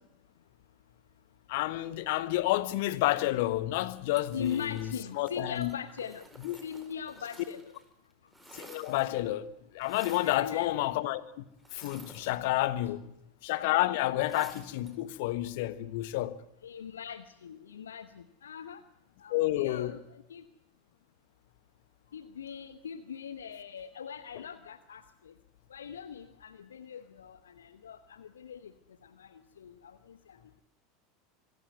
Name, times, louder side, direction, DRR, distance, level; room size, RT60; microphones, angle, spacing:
voice 1, 1.5-5.7 6.4-6.6 8.5-11.4 11.7-13.0 13.4-16.4 19.3-20.0, left 16 dB, 60° left, 1.3 m, -30 dB
sound 1, 4.1-7.8 8.1-9.3 9.8-10.5 11.6-12.8 14.2-15.0, right 1 dB, 5° right, 4.5 m, -53 dB
voice 2, 4.3-6.3 6.6-7.7 10.2-10.7 12.2-12.3 16.6-18.8 19.2-20.4 22.1-25.3 25.7-28.7 29.0-30.6, left 7 dB, 75° left, 0.9 m, -41 dB
25.0 x 15.0 x 9.3 m
figure-of-eight pair, 80°, 0 cm